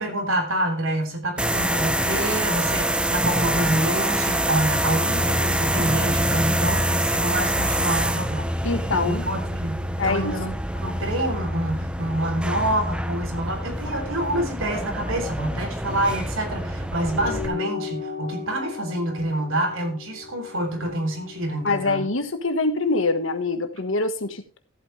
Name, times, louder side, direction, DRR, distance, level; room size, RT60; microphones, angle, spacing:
voice 1, 0.0-8.5 9.1-10.5 10.8-22.1, right 1 dB, 85° right, 3 dB, 3.3 m, -27 dB
sound 1, 1.4-17.5, right 1 dB, 5° right, 0.8 m, -25 dB
voice 2, 8.6-9.2 10.0-10.3 21.6-24.6, left 3 dB, 75° left, 8 dB, 1.5 m, -24 dB
sound 2, 17.0-21.8, left 7 dB, 65° right, 4.1 m, -36 dB
14.0 x 8.7 x 3.3 m, 0.37 s
head